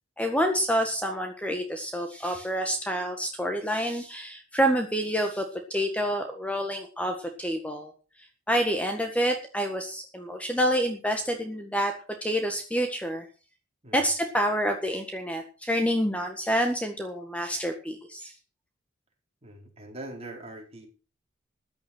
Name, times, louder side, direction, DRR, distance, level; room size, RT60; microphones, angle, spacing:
voice 1, 0.2-7.9 8.2-11.9 12.2-13.3 13.9-18.3, equal, 5° left, 5 dB, 1.6 m, -28 dB
voice 2, 19.4-20.9, right 1 dB, 30° right, 1 dB, 4.4 m, -42 dB
14.5 x 9.9 x 6.2 m, 0.36 s
head